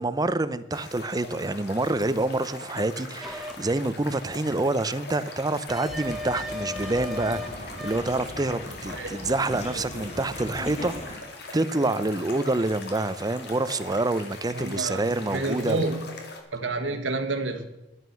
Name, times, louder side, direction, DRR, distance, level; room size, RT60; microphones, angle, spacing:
voice 1, 0.0-11.3 11.5-15.8, right 2 dB, 20° right, 14 dB, 0.6 m, -27 dB
sound 1, 0.7-16.4, left 3 dB, 60° left, 2.3 m, -41 dB
sound 2, 3.2-3.6 5.7-7.5 7.8-8.1, left 2 dB, ahead, 1.0 m, -35 dB
sound 3, 5.9-11.1, left 1 dB, 35° left, 2.9 m, -39 dB
voice 2, 14.5-15.0 15.3-16.0 16.5-17.6, right 2 dB, 75° right, 5 dB, 1.5 m, -29 dB
11.0 x 9.4 x 7.0 m, 0.98 s
head